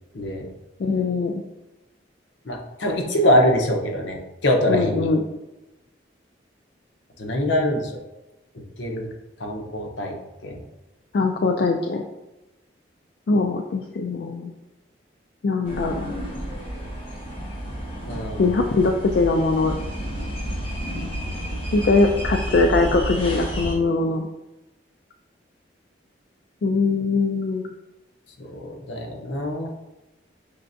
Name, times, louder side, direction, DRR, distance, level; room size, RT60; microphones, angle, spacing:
voice 1, 0.1-0.5 2.5-5.1 7.2-7.9 8.5-9.1 9.4-10.1 10.4-10.6 18.1-18.5 28.4-29.7, equal, 75° left, 1 dB, 0.8 m, -24 dB
voice 2, 0.8-1.4 4.7-5.2 11.1-12.0 13.3-14.5 15.4-16.1 18.4-19.7 21.7-24.3 26.6-27.7, left 3 dB, 60° left, 3 dB, 0.3 m, -21 dB
sound 1, 15.6-23.8, equal, 30° left, 1.2 m, -30 dB
5.7 x 3.3 x 2.6 m, 1.0 s
head